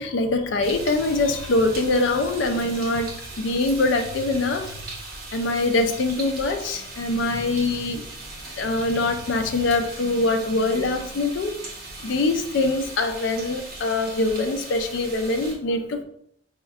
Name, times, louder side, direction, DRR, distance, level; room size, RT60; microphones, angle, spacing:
voice 1, 0.0-3.1 3.4-4.8 5.3-8.0 8.6-11.6 12.0-16.0, left 2 dB, 85° left, 6 dB, 0.4 m, -23 dB
sound 1, 0.6-15.5, right 2 dB, 50° right, 1.0 m, -39 dB
4.2 x 3.5 x 2.3 m, 0.69 s
head